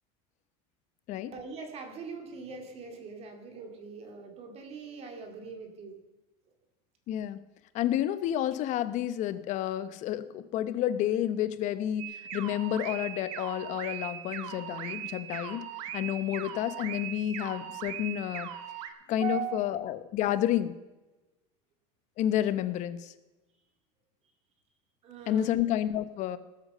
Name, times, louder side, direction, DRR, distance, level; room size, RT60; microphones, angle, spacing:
voice 1, 1.3-6.0 19.2-19.8 25.0-25.6, right 5 dB, 40° right, 4 dB, 2.4 m, -40 dB
voice 2, 7.1-7.4 7.7-15.6 15.9-18.5 19.1-20.7 22.2-23.1 25.3-26.4, left 11 dB, 45° left, 14 dB, 0.8 m, -30 dB
sound 1, 12.0-18.9, right 10 dB, 90° right, 1.5 m, -39 dB
18.5 x 8.2 x 6.6 m, 1.1 s
cardioid pair, 140°, 17 cm